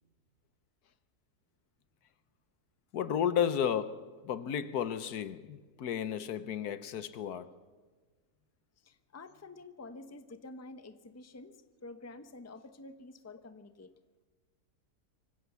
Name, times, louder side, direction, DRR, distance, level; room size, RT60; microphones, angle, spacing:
voice 1, 2.9-7.6, left 8 dB, 75° left, 1.4 m, -33 dB
voice 2, 8.8-11.6 11.8-13.9, left 2 dB, 10° left, 0.8 m, -49 dB
24.5 x 16.0 x 6.9 m
omnidirectional pair, 1.7 m